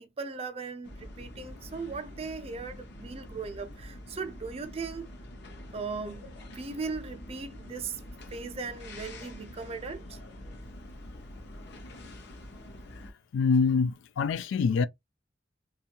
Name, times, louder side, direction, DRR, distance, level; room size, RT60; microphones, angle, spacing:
voice 1, 0.0-5.1 5.7-8.0 8.3-10.2, right 4 dB, 35° right, 0.4 m, -38 dB
sound 1, 0.8-13.1, left 1 dB, 65° left, 0.7 m, -46 dB
voice 2, 13.3-14.9, left 5 dB, 85° left, 0.3 m, -25 dB
2.6 x 2.3 x 2.8 m
head